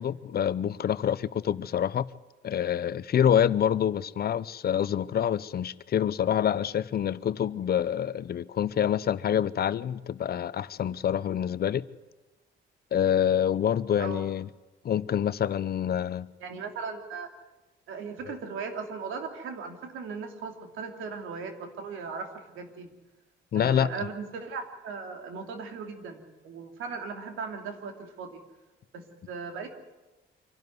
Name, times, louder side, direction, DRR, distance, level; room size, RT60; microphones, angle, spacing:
voice 1, 0.0-2.1 2.4-11.8 12.9-14.5 14.8-16.3 23.5-23.9, left 9 dB, 50° left, 0.7 m, -26 dB
voice 2, 16.4-17.3 17.9-22.9 23.5-28.4 28.9-29.7, right 5 dB, 85° right, 2.9 m, -38 dB
25.5 x 12.0 x 9.5 m
cardioid pair, 90°, 20 cm